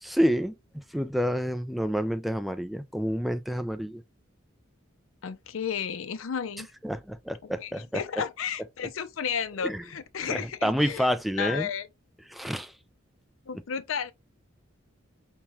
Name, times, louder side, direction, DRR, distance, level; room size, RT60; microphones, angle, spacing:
voice 1, 0.0-4.0 6.8-8.2 9.6-9.8 10.2-11.7 12.3-12.7 13.5-13.6, equal, ahead, 0.3 m, -29 dB
voice 2, 5.2-6.7 7.6-11.1 11.4-11.9 13.5-14.1, left 7 dB, 75° left, 0.5 m, -33 dB
5.5 x 2.3 x 2.9 m
head